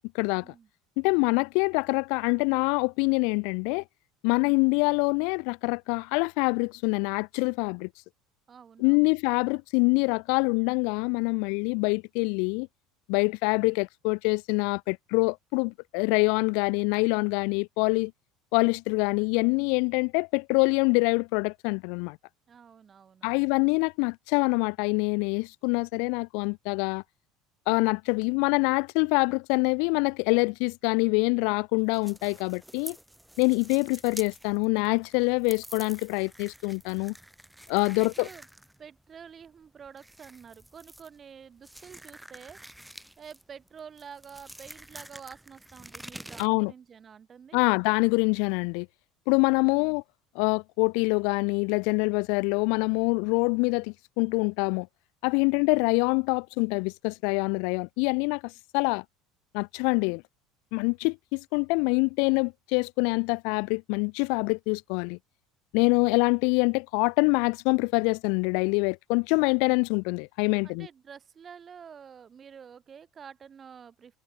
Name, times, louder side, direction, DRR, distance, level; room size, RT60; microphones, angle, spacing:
voice 1, 0.1-0.5 1.0-3.8 4.2-7.9 8.8-12.7 13.1-18.1 18.5-22.2 23.2-27.0 27.7-33.0 33.4-37.1 37.7-38.3 46.4-46.7 47.5-48.9 49.3-50.0 50.4-54.9 55.2-59.0 59.5-60.2 60.7-65.2 65.7-70.9, left 38 dB, 75° left, 0.4 m, -25 dB
voice 2, 8.5-9.1 22.5-23.5 37.9-38.5 38.8-42.6 43.2-47.6 49.6-50.0 55.4-55.6 66.1-66.2 70.6-74.2, right 7 dB, 25° right, 2.7 m, -48 dB
sound 1, 31.8-46.5, right 1 dB, ahead, 1.8 m, -48 dB
cardioid pair, 155°, 0 cm